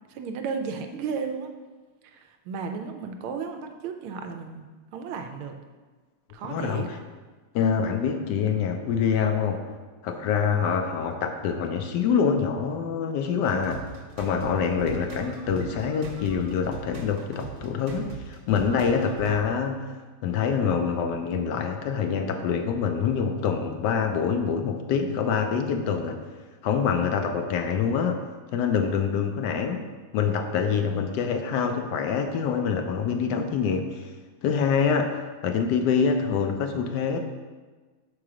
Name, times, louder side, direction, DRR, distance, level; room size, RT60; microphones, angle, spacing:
voice 1, 0.1-1.5 2.0-5.5 6.3-6.9 30.9-31.2, right 5 dB, 85° right, 6 dB, 1.5 m, -34 dB
voice 2, 6.4-7.0 7.5-9.6 10.0-13.8 14.2-20.0 20.2-26.2 26.6-28.2 28.5-29.8 30.1-34.1 34.4-37.2, left 6 dB, 75° left, 6 dB, 1.0 m, -25 dB
sound 1, 13.5-19.4, right 3 dB, 65° right, 1.6 m, -40 dB
4.8 x 4.7 x 6.1 m, 1.4 s
omnidirectional pair, 2.3 m